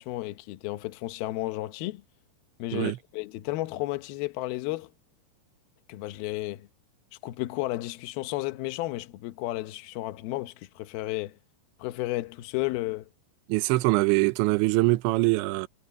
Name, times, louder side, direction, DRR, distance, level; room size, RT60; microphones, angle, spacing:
voice 1, 0.0-2.0 2.6-4.9 5.9-6.7 7.2-11.4 11.8-13.1, left 18 dB, 80° left, 2.2 m, -33 dB
voice 2, 13.5-15.7, right 21 dB, 80° right, 3.0 m, -23 dB
omnidirectional pair, 5.4 m